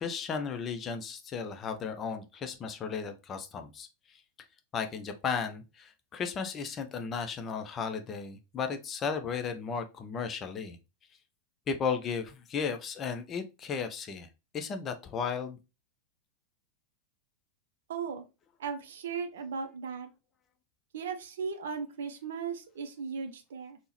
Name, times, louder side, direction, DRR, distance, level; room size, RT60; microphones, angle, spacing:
voice 1, 0.0-3.9 4.7-10.8 11.7-14.3 14.5-15.6, left 6 dB, 25° left, 7 dB, 0.4 m, -35 dB
voice 2, 17.9-18.2 18.6-20.1 20.9-23.8, right 6 dB, 60° right, 7 dB, 0.4 m, -37 dB
3.5 x 2.0 x 2.9 m, 0.28 s
figure-of-eight pair, 90°, 0 cm